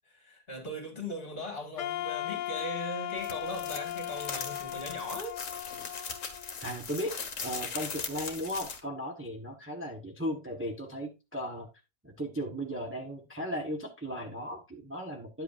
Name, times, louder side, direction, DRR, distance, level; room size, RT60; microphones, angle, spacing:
voice 1, 0.1-5.3, equal, 35° left, 2.6 m, -39 dB
Wind instrument woodwind instrument, 1.8-6.8, left 14 dB, 85° left, 1.4 m, -37 dB
sound 1, 3.2-8.8, left 5 dB, 55° left, 1.8 m, -40 dB
voice 2, 6.6-11.7 12.0-15.4, equal, 10° right, 1.2 m, -36 dB
10.0 x 8.0 x 2.6 m
omnidirectional pair, 1.8 m